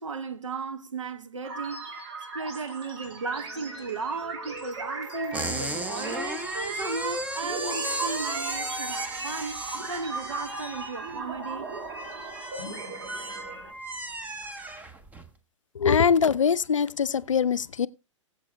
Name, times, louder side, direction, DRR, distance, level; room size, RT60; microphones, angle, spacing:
voice 1, 0.0-2.0 2.3-9.6 9.9-11.7, right 4 dB, 75° right, 1.0 m, -35 dB
sound 1, 1.4-13.7, right 3 dB, 55° right, 2.7 m, -38 dB
sound 2, 3.0-7.6, right 2 dB, 30° right, 3.9 m, -46 dB
sound 3, 5.3-15.3, right 1 dB, 10° right, 0.9 m, -35 dB
voice 2, 15.7-17.9, left 6 dB, 75° left, 0.5 m, -22 dB
21.5 x 7.8 x 2.2 m
figure-of-eight pair, 105°, 16 cm